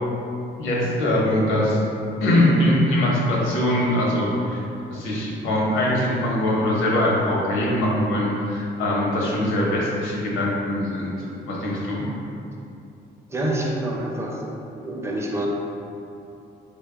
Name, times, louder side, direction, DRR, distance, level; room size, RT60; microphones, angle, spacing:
voice 1, 0.6-1.8 2.2-4.6 4.9-11.1 11.5-12.0, left 1 dB, 85° left, -4 dB, 0.8 m, -22 dB
voice 2, 13.3-14.4 14.8-15.5, right 1 dB, 15° right, -2 dB, 0.5 m, -27 dB
3.4 x 2.2 x 3.4 m, 2.7 s
cardioid pair, 90°, 20 cm